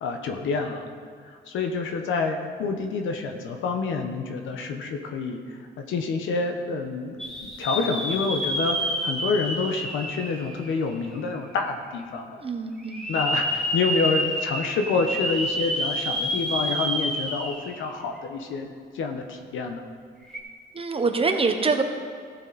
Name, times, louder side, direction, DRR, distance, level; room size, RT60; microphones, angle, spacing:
voice 1, 0.0-0.9 1.2-12.4 13.1-19.8, left 4 dB, 80° left, 4 dB, 1.0 m, -28 dB
sound 1, 7.2-11.2 11.7-11.8 12.8-17.8 18.2-18.3 20.2-20.4, equal, 5° left, 1.8 m, -29 dB
voice 2, 12.4-13.1 20.7-21.8, right 4 dB, 30° right, 5 dB, 1.1 m, -25 dB
14.5 x 7.2 x 4.1 m, 2.1 s
cardioid pair, 90°, 20 cm